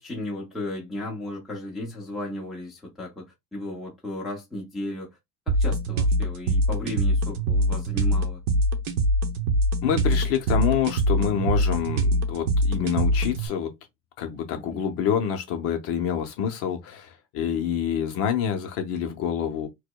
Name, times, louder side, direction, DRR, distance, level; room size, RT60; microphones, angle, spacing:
voice 1, 0.0-3.2 3.5-5.1 5.5-8.4 14.5-14.8, left 1 dB, ahead, 0.5 m, -35 dB
sound 1, 5.5-13.5, equal, 65° right, 0.8 m, -23 dB
voice 2, 9.8-13.7 14.2-19.7, left 8 dB, 40° left, 0.6 m, -27 dB
4.7 x 2.1 x 2.2 m
cardioid pair, 180°, 38 cm